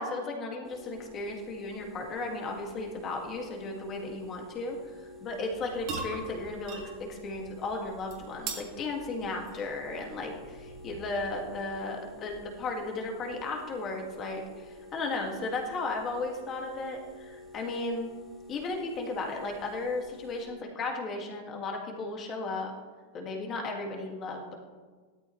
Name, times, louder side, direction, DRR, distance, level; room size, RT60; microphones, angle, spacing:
voice 1, 0.0-18.1 18.5-22.7 23.1-24.5, left 3 dB, 25° left, 1 dB, 2.0 m, -35 dB
sound 1, 0.6-20.5, left 2 dB, 5° left, 1.8 m, -49 dB
sound 2, 5.5-11.9, right 4 dB, 40° right, 2.2 m, -43 dB
17.0 x 12.5 x 3.2 m, 1.4 s
supercardioid pair, 165°, 0 cm